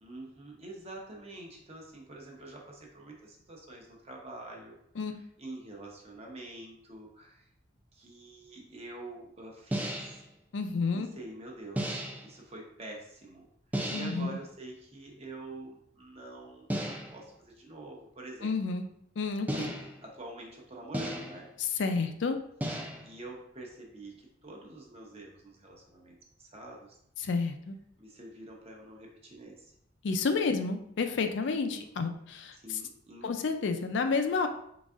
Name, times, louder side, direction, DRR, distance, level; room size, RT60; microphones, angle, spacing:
voice 1, 0.0-4.8 5.1-7.5 7.9-10.2 10.9-12.0 12.2-13.5 13.7-18.5 20.0-21.5 23.0-26.9 28.0-29.7 31.5-31.9 32.5-33.3, right 2 dB, 30° right, 0 dB, 0.8 m, -46 dB
sound 1, 9.7-10.3 11.8-12.3 13.7-14.3 16.7-17.3 19.5-20.1 20.9-21.5 22.6-23.2, right 1 dB, 10° right, 0.4 m, -34 dB
voice 2, 10.5-11.1 13.9-14.4 18.4-18.8 19.2-19.7 21.6-22.4 27.2-27.7 30.0-32.8 33.2-34.5, left 4 dB, 65° left, 6 dB, 0.4 m, -30 dB
4.4 x 3.9 x 2.4 m, 0.71 s
head